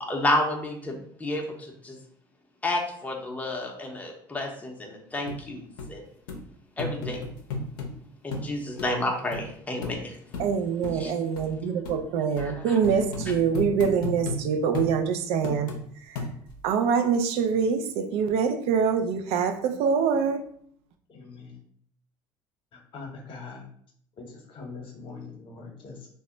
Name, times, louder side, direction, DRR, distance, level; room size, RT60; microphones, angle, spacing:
voice 1, 0.0-2.0 2.6-5.6 5.9-6.0 6.8-7.2 8.2-10.2 11.0-11.1 12.4-12.8, left 1 dB, 15° left, 0.6 m, -30 dB
sound 1, 5.3-5.4 5.8-5.9 6.3-6.4 6.8-7.9 8.3-8.5 8.8-8.9 9.3-9.4 9.8-10.0 10.3-10.5 10.8-11.0 11.4-11.5 11.8-12.0 12.4-12.5 12.8-14.4 14.7-14.9 15.4-15.8 16.2-16.6 17.1-17.2, left 3 dB, 85° left, 0.5 m, -33 dB
voice 2, 10.4-15.7 16.1-16.2 16.6-20.5, right 6 dB, 70° right, 0.4 m, -25 dB
voice 3, 21.1-21.6 22.7-23.7 24.2-26.1, left 4 dB, 50° left, 0.9 m, -43 dB
2.1 x 2.1 x 3.7 m
supercardioid pair, 75°, 11 cm